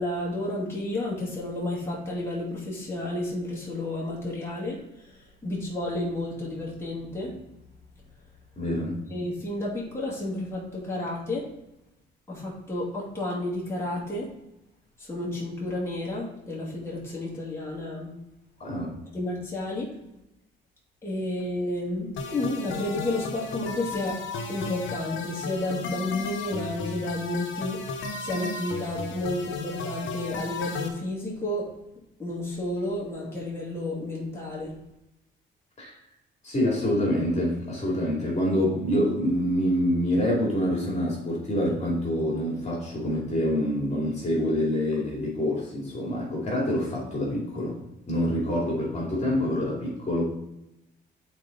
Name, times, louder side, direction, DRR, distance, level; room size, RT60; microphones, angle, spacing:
voice 1, 0.0-7.4 9.1-11.5 12.3-14.3 15.0-18.1 19.1-19.9 21.0-24.2 24.5-31.7 32.2-34.7, left 1 dB, 10° left, -6 dB, 2.5 m, -31 dB
voice 2, 8.6-9.0 18.6-19.0 35.8-35.9 36.4-47.8 48.1-50.2, equal, 35° left, -3 dB, 2.6 m, -26 dB
sound 1, 22.2-30.9, left 4 dB, 75° left, 1.0 m, -35 dB
7.8 x 4.3 x 4.0 m, 0.88 s
cardioid pair, 90°, 20 cm